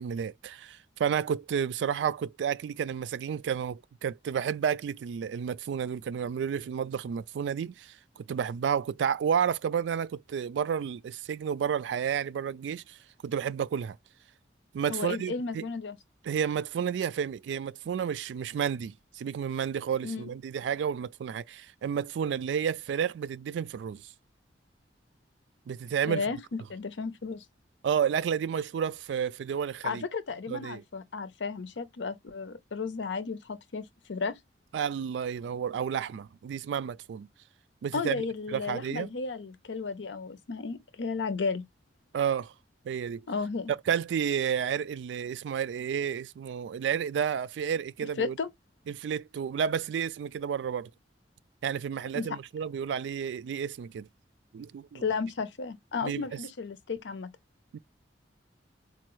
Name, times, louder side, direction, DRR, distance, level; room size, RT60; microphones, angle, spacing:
voice 1, 0.0-14.0 14.7-15.7 16.3-24.1 25.7-26.3 27.8-30.0 30.5-30.8 34.7-37.3 37.8-38.2 38.5-39.1 42.1-42.5 42.8-43.2 43.9-48.4 48.9-50.9 51.6-54.1 54.5-55.1 56.0-56.4 57.7-57.8, right 7 dB, 70° right, 0.3 m, -31 dB
voice 2, 14.9-16.0 20.0-20.3 26.1-27.4 29.8-34.4 37.9-41.6 43.3-43.7 48.2-48.5 52.1-52.3 54.9-57.3, left 4 dB, 80° left, 0.6 m, -33 dB
4.3 x 2.2 x 3.0 m
head